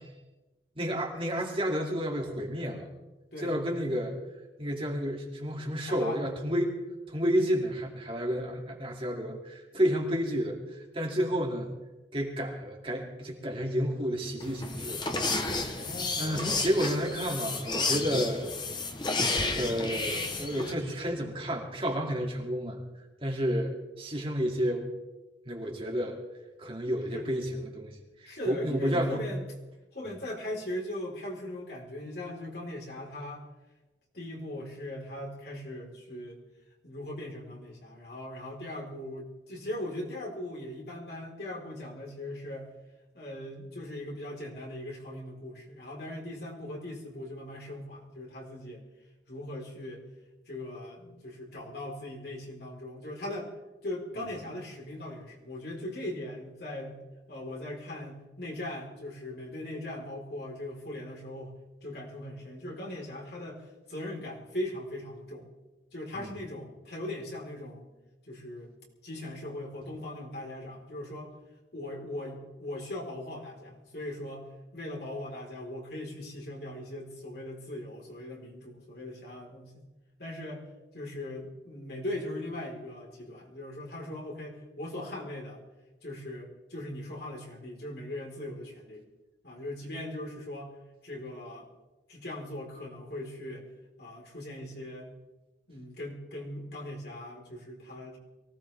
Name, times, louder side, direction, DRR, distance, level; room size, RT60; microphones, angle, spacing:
voice 1, 0.8-2.9 3.4-4.2 4.6-6.7 7.1-11.7 12.1-15.8 16.2-18.5 19.6-22.8 23.2-24.9 25.5-26.2 26.6-29.2 66.1-66.3, equal, 30° right, -1 dB, 2.5 m, -31 dB
voice 2, 5.8-6.2 15.7-16.4 27.1-27.2 28.2-29.4 29.9-33.5 34.1-36.4 36.8-42.7 43.1-48.8 49.3-50.0 50.5-53.5 53.8-56.9 57.3-61.5 61.8-65.4 65.9-67.9 68.3-68.7 69.0-71.3 71.7-79.8 80.2-80.7 80.9-85.6 86.0-89.0 89.4-90.7 91.0-91.7 92.1-93.7 94.0-95.1 95.7-98.2, left 1 dB, 60° left, -2 dB, 4.2 m, -39 dB
sound 1, 14.4-20.7, left 3 dB, 25° left, 1.1 m, -31 dB
23.5 x 17.0 x 3.5 m, 1.1 s
head